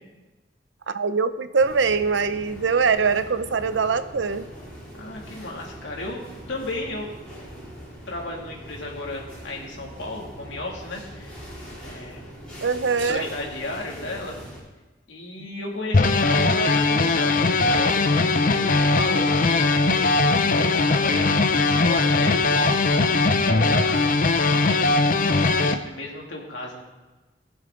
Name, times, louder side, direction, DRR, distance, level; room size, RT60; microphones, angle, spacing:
voice 1, 0.9-4.5 12.6-13.3, right 5 dB, 90° right, 12 dB, 0.6 m, -23 dB
sound 1, 1.6-14.6, equal, 5° left, 4.4 m, -42 dB
voice 2, 5.0-7.1 8.1-11.4 11.8-12.2 13.0-14.4 15.1-25.0 25.5-26.8, left 2 dB, 85° left, -1 dB, 2.6 m, -34 dB
sound 2, 15.9-25.7, left 3 dB, 50° left, 0.7 m, -20 dB
19.0 x 7.3 x 3.8 m, 1.2 s
head